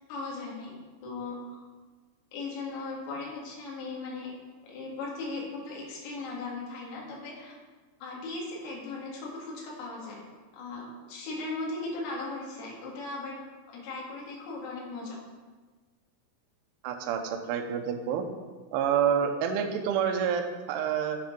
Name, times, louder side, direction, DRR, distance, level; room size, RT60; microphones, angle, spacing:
voice 1, 0.1-0.8 1.0-1.6 2.3-4.3 4.6-7.5 8.0-10.2 10.5-13.4 13.7-15.2, left 3 dB, 85° left, -3 dB, 4.6 m, -38 dB
voice 2, 16.8-18.3 18.7-21.2, right 8 dB, 80° right, 4 dB, 2.5 m, -28 dB
12.5 x 4.5 x 5.3 m, 1.3 s
omnidirectional pair, 5.7 m